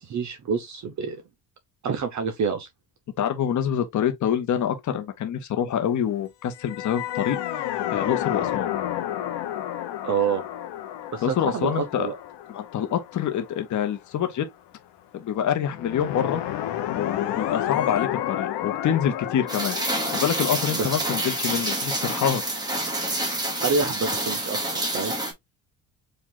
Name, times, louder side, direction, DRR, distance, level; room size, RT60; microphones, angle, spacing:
voice 1, 0.0-1.2 1.8-2.7 10.0-10.4 11.1-12.1 20.7-20.9 23.6-25.2, right 5 dB, 45° right, 0.8 m, -27 dB
voice 2, 3.2-7.7 7.9-8.7 11.2-12.1 12.5-14.5 15.1-16.4 16.9-19.8 20.1-22.4 22.7-22.9, left 9 dB, 45° left, 0.9 m, -26 dB
sound 1, 6.6-13.8 15.7-23.5, left 12 dB, 80° left, 1.0 m, -31 dB
Rain, 19.5-25.3, right 1 dB, 10° right, 1.4 m, -28 dB
5.0 x 2.5 x 3.9 m
cardioid pair, 155°, 41 cm